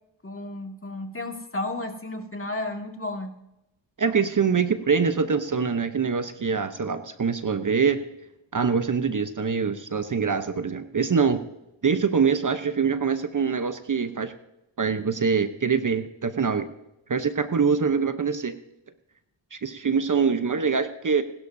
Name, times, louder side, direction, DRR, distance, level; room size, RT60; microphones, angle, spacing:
voice 1, 0.2-3.3, left 2 dB, 25° left, 3 dB, 2.1 m, -33 dB
voice 2, 4.0-8.0 8.5-11.4 11.8-14.3 14.8-16.7 17.1-18.5 19.5-21.2, right 5 dB, 40° right, 9 dB, 0.9 m, -24 dB
21.5 x 12.0 x 2.7 m, 0.88 s
cardioid pair, 60°, 47 cm